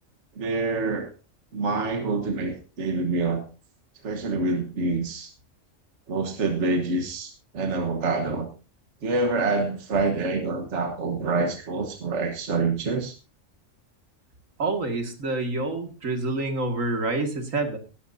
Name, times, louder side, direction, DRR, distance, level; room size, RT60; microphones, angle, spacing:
voice 1, 0.4-1.1 1.5-3.5 4.0-5.3 6.1-8.5 9.0-13.1, right 3 dB, 65° right, 5 dB, 1.6 m, -26 dB
voice 2, 14.6-17.8, right 2 dB, 85° right, 5 dB, 2.5 m, -27 dB
17.5 x 13.0 x 2.7 m, 0.31 s
omnidirectional pair, 1.3 m